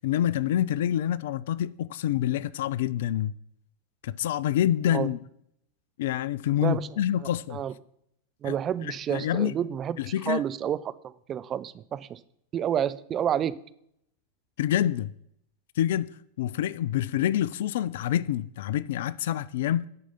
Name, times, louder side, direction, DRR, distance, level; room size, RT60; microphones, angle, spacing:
voice 1, 0.0-3.3 4.0-5.2 6.0-7.6 8.4-8.6 8.8-9.5 10.0-10.4 14.6-15.1 15.8-16.1 16.4-19.9, left 11 dB, 55° left, 0.3 m, -27 dB
voice 2, 8.4-10.0 10.3-12.2 12.5-13.5, right 9 dB, 30° right, 0.4 m, -29 dB
9.8 x 4.8 x 5.7 m
figure-of-eight pair, 90°, 0 cm